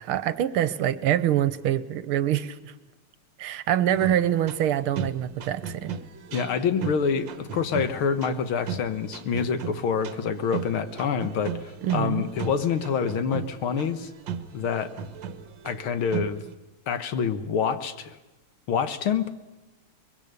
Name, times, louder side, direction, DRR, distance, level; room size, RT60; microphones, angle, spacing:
voice 1, 0.0-2.7 3.4-5.9 11.8-12.3, right 11 dB, 80° right, 15 dB, 1.8 m, -25 dB
sound 1, 3.9-16.5, right 7 dB, 60° right, 1.7 m, -37 dB
voice 2, 6.3-14.1 14.5-14.9 15.6-16.4 16.9-18.2 18.7-19.3, left 6 dB, 70° left, 11 dB, 2.1 m, -27 dB
23.5 x 22.0 x 6.7 m, 1.1 s
omnidirectional pair, 2.4 m